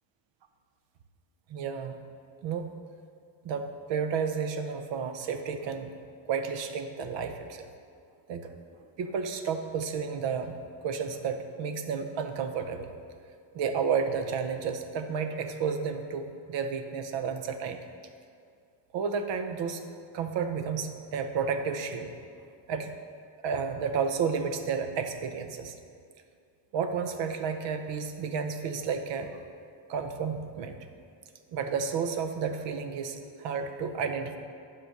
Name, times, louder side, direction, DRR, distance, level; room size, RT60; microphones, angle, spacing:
voice 1, 1.5-2.0 2.4-2.7 3.4-5.9 6.3-7.7 8.3-8.5 9.0-12.9 13.5-17.8 18.9-19.8 20.1-22.1 22.7-22.9 23.4-25.7 26.7-29.3 29.9-30.8 31.5-34.4, right 6 dB, 60° right, 7 dB, 0.8 m, -31 dB
9.5 x 4.9 x 6.0 m, 2.3 s
cardioid pair, 170°, 50 cm